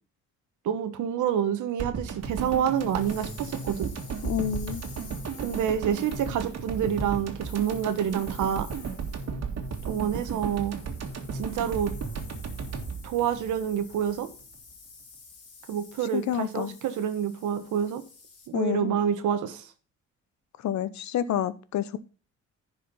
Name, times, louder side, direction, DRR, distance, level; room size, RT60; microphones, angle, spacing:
voice 1, 0.6-3.9 5.4-8.7 9.9-10.8 11.3-11.9 13.0-14.3 15.7-18.0 18.5-19.7, right 9 dB, 80° right, 1.4 m, -28 dB
sound 1, 1.8-14.1 14.4-14.5, right 5 dB, 55° right, 2.0 m, -35 dB
sound 2, 2.2-18.5, left 4 dB, 50° left, 3.7 m, -50 dB
voice 2, 4.2-4.8 16.1-16.8 18.5-19.0 20.6-22.0, left 10 dB, 65° left, 0.9 m, -29 dB
10.5 x 5.0 x 5.4 m
cardioid pair, 90°, 30 cm